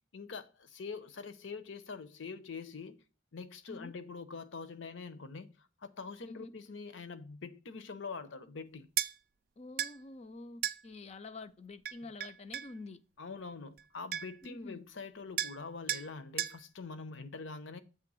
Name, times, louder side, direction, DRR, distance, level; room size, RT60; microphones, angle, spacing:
voice 1, 0.1-3.0 3.3-8.9 12.0-12.1 13.2-17.8, left 4 dB, 70° left, 0.7 m, -44 dB
sound 1, 9.0-9.1 9.8-10.0 10.6-10.8 11.9-12.7 13.8-13.9 14.1-14.5 15.4-15.6 15.9-16.1 16.4-16.6, right 11 dB, 45° right, 0.3 m, -34 dB
voice 2, 9.6-13.0 14.4-14.9, left 2 dB, 30° left, 0.4 m, -47 dB
7.6 x 3.3 x 6.1 m
head